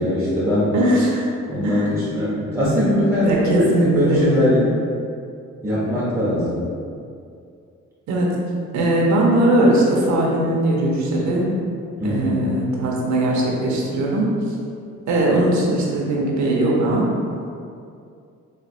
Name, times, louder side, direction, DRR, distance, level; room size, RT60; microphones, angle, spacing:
voice 1, 0.0-0.7 1.5-4.6 5.6-6.6 12.0-12.4, left 1 dB, 10° right, -9 dB, 0.7 m, -21 dB
voice 2, 0.7-1.3 1.6-1.9 3.2-4.5 8.1-8.4 8.7-11.5 12.0-14.3 15.1-17.1, right 1 dB, 65° right, -2 dB, 0.8 m, -19 dB
4.2 x 2.4 x 2.4 m, 2.4 s
cardioid pair, 90°, 30 cm